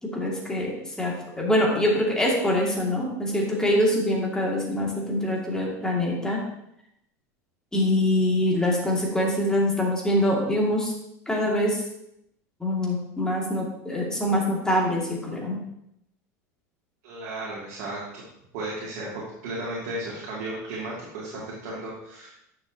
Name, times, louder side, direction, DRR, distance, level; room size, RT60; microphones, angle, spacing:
voice 1, 0.0-6.4 7.7-10.9 11.3-11.8 12.6-15.6, left 1 dB, 5° left, -3 dB, 2.3 m, -24 dB
voice 2, 17.0-18.2 18.5-22.3, right 1 dB, 70° right, -6 dB, 2.6 m, -34 dB
9.9 x 6.4 x 2.9 m, 0.78 s
supercardioid pair, 120°, 9 cm